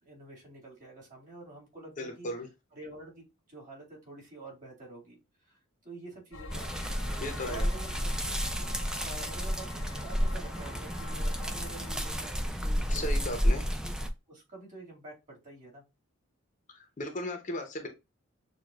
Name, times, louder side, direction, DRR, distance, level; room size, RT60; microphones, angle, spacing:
voice 1, 0.0-2.3 2.7-6.7 7.5-13.3 13.8-15.8, right 2 dB, 35° right, -3 dB, 2.1 m, -48 dB
voice 2, 1.8-2.5 7.2-7.7 12.9-13.7 16.7-17.9, left 1 dB, 40° left, 5 dB, 0.7 m, -36 dB
sound 1, 6.3-12.3, left 2 dB, 65° left, 0.9 m, -44 dB
sound 2, 6.5-14.1, equal, 5° right, 0.3 m, -31 dB
6.4 x 2.3 x 2.3 m, 0.25 s
head